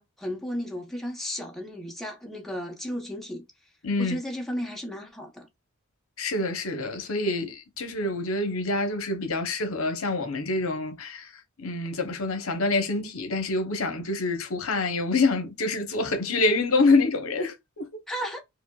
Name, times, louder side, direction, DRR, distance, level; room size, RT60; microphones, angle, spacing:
voice 1, 0.0-3.4 4.0-5.5 18.1-18.4, equal, ahead, 1.0 m, -34 dB
voice 2, 3.8-4.2 6.2-18.0, left 3 dB, 70° left, 0.9 m, -26 dB
5.0 x 2.1 x 2.3 m
head